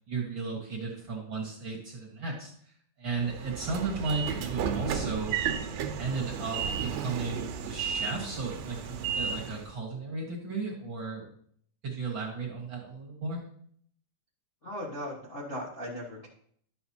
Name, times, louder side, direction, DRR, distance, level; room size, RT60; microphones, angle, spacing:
voice 1, 0.1-2.7 3.0-5.4 6.0-11.3 11.8-13.4, right 4 dB, 50° right, -2 dB, 1.6 m, -35 dB
Train / Sliding door, 3.2-9.7, right 7 dB, 75° right, 2.3 m, -33 dB
voice 2, 14.6-16.3, equal, 80° left, -6 dB, 0.6 m, -38 dB
11.5 x 7.8 x 2.8 m, 0.63 s
omnidirectional pair, 4.1 m